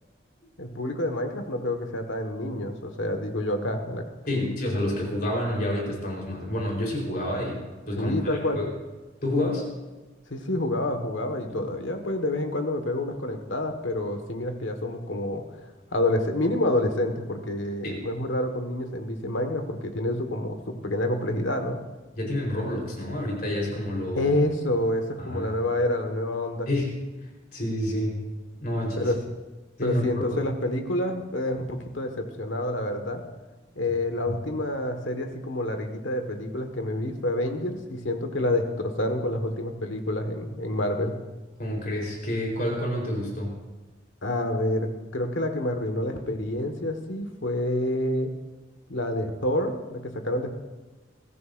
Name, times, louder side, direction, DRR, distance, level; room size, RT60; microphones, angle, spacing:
voice 1, 0.6-4.0 8.0-8.6 10.3-21.8 24.1-26.7 29.0-29.2 29.8-33.2 33.7-41.1 44.2-48.3 48.9-50.5, left 1 dB, 85° left, 5 dB, 1.6 m, -28 dB
voice 2, 4.3-7.6 7.9-8.7 9.2-9.7 11.5-11.6 17.8-18.0 22.2-24.3 25.2-25.5 26.7-27.0 27.5-28.3 28.6-29.1 29.8-30.4 41.6-43.6, left 1 dB, 50° left, -2 dB, 4.0 m, -29 dB
22.0 x 14.0 x 2.6 m, 1.2 s
head